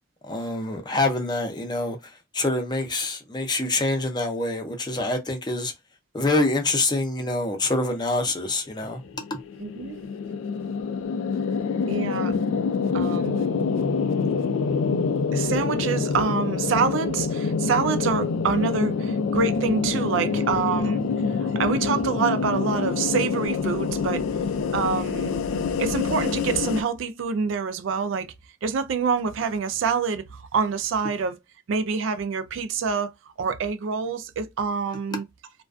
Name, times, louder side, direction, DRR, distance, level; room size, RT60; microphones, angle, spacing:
voice 1, 0.2-2.0 2.3-5.7 6.1-9.0 9.3-9.4 20.4-20.5, left 2 dB, 20° left, 0.5 m, -25 dB
sound 1, 9.0-26.8, left 5 dB, 80° left, 0.3 m, -26 dB
voice 2, 9.6-10.1 11.9-12.4 12.9-13.6 15.3-21.0 21.3-24.3 24.7-25.4 25.8-28.3 28.6-31.4 31.7-33.1 33.4-35.3, right 5 dB, 65° right, 0.4 m, -26 dB
2.3 x 2.2 x 2.3 m
head